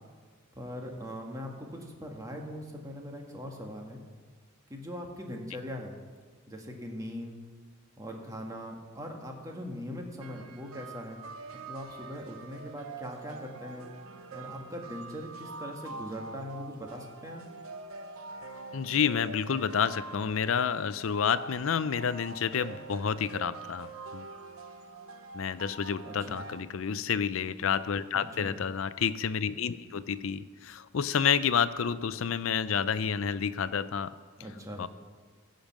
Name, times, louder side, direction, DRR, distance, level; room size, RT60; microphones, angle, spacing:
voice 1, 0.5-4.0 4.7-5.9 6.5-7.4 8.0-11.2 11.6-13.9 14.3-17.4 26.0-26.4 28.1-28.5 34.4-34.9, equal, 15° right, 1 dB, 1.5 m, -41 dB
sound 1, 10.2-26.6, right 3 dB, 85° right, 0.8 m, -45 dB
voice 2, 18.7-24.3 25.3-34.1 34.8-34.9, left 7 dB, 70° left, 15 dB, 0.5 m, -29 dB
15.5 x 5.2 x 7.4 m, 1.5 s
head